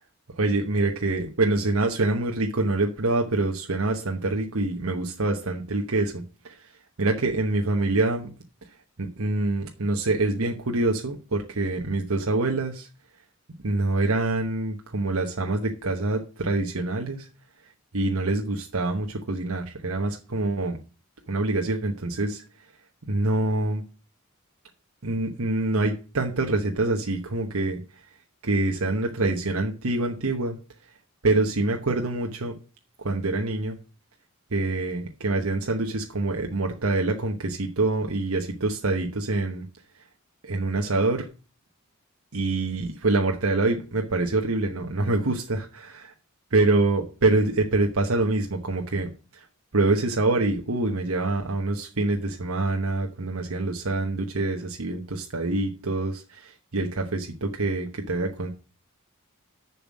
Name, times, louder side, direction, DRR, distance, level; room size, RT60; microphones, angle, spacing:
voice 1, 0.4-6.7 7.0-8.3 9.0-12.9 13.6-17.3 17.9-20.8 21.3-22.4 23.1-23.8 25.0-27.8 28.4-30.6 31.2-32.5 33.0-33.8 34.5-39.6 40.4-41.3 42.3-45.9 46.5-49.4 49.7-58.5, right 2 dB, 85° right, 2 dB, 1.1 m, -25 dB
7.1 x 5.9 x 7.4 m, 0.35 s
head